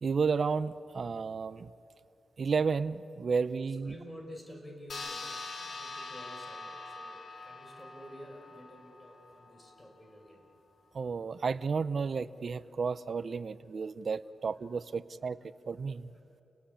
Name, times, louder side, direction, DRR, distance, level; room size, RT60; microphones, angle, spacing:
voice 1, 0.0-1.7 2.4-3.9 10.9-15.4 15.7-16.1, right 5 dB, 55° right, 13 dB, 0.7 m, -32 dB
voice 2, 3.7-10.4 14.4-14.6 15.4-16.2, equal, 15° left, 2 dB, 6.4 m, -51 dB
sound 1, 4.9-9.8, left 3 dB, 65° left, 3.7 m, -44 dB
29.5 x 19.0 x 8.7 m, 2.7 s
cardioid pair, 65°, 0 cm